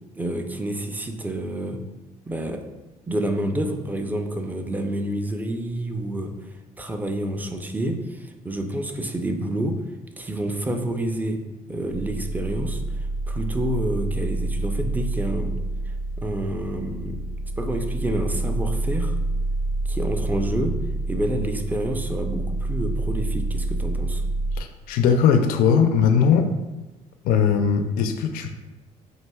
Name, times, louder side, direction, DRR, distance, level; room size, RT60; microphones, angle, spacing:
voice 1, 0.2-1.8 2.3-2.6 3.1-6.3 6.8-9.8 10.2-11.4 11.7-12.8 13.3-15.6 16.2-17.2 17.6-19.2 19.9-20.8 21.1-24.2, right 1 dB, 10° right, 5 dB, 0.4 m, -28 dB
sound 1, 11.9-24.6, right 2 dB, 75° right, 0.6 m, -27 dB
voice 2, 24.6-26.5 27.2-28.5, left 7 dB, 70° left, 6 dB, 0.4 m, -19 dB
5.5 x 2.6 x 2.2 m, 1.1 s
supercardioid pair, 90°, 15 cm